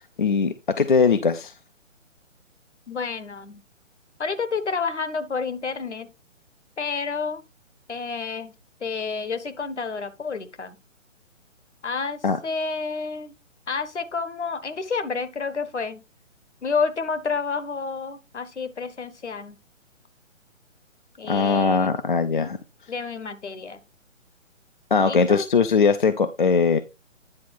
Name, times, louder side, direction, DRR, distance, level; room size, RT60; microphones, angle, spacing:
voice 1, 0.2-1.5 12.2-12.4 21.3-22.6 24.9-26.8, left 5 dB, 40° left, 0.5 m, -20 dB
voice 2, 2.9-3.6 4.2-6.1 6.8-7.4 7.9-8.5 8.8-10.8 11.8-13.3 13.7-16.0 16.6-19.6 21.2-21.9 22.9-23.8 25.1-25.4, left 5 dB, 60° left, 1.2 m, -29 dB
9.6 x 4.1 x 4.3 m
figure-of-eight pair, 140°, 38 cm